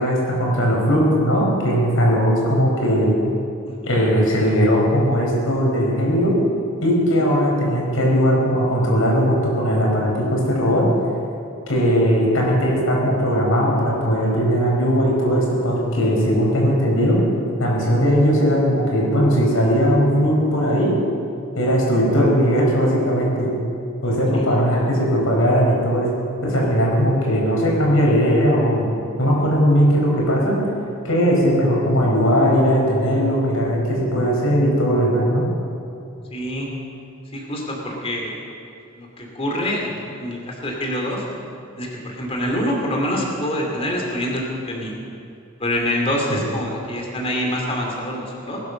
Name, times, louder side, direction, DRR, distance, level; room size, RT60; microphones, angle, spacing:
voice 1, 0.0-3.1 3.8-6.4 6.8-10.9 11.7-17.2 17.6-20.9 21.6-23.5 24.0-26.1 26.4-28.9 29.2-30.6 31.0-35.4 46.3-46.4, equal, 85° left, -2 dB, 5.2 m, -18 dB
voice 2, 3.7-4.0 7.2-7.4 17.9-18.0 24.3-24.6 36.3-36.7 37.3-38.4 38.9-41.2 41.8-45.0 45.6-48.6, equal, 30° left, -1 dB, 2.7 m, -26 dB
20.0 x 11.0 x 6.5 m, 2.5 s
head